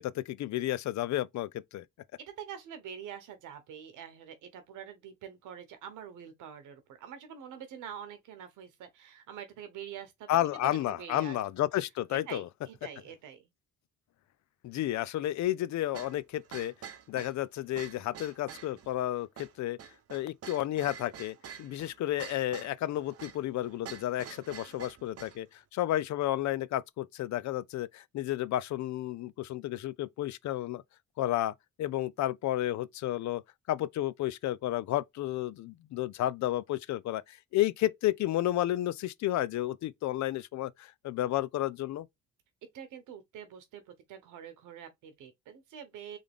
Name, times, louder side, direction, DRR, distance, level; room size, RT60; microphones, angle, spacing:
voice 1, 0.0-1.8 10.3-12.5 14.6-16.7 17.1-19.8 20.1-30.8 31.2-33.4 33.7-42.1, left 14 dB, 65° left, 0.5 m, -32 dB
voice 2, 2.2-10.5 10.9-11.4 12.3-13.4 42.7-46.2, right 8 dB, 90° right, 1.2 m, -45 dB
Tin Banging, 15.9-25.4, right 8 dB, 50° right, 0.8 m, -48 dB
3.6 x 3.5 x 3.5 m
cardioid pair, 90°, 30 cm